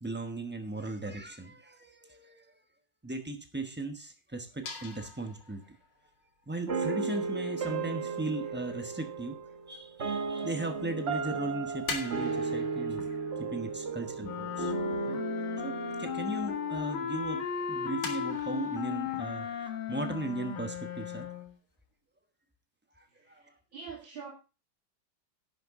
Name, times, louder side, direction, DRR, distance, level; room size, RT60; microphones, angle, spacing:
voice 1, 0.0-2.5 3.0-5.6 6.5-9.4 9.7-13.0 13.4-14.7 15.1-15.2 15.6-21.4 23.0-23.4, right 2 dB, 10° right, 6 dB, 0.5 m, -37 dB
sound 1, 4.6-8.0 8.9-9.5 9.7-11.1 11.4-16.6 16.9-17.0 17.3-17.5 18.0-19.5, left 4 dB, 60° left, 2.5 m, -44 dB
sound 2, 6.7-17.8, right 4 dB, 40° right, 1.2 m, -35 dB
sound 3, 14.2-21.6, left 9 dB, 75° left, 1.9 m, -36 dB
voice 2, 23.2-24.3, right 6 dB, 70° right, -3 dB, 3.0 m, -45 dB
11.0 x 9.1 x 3.6 m, 0.31 s
omnidirectional pair, 2.3 m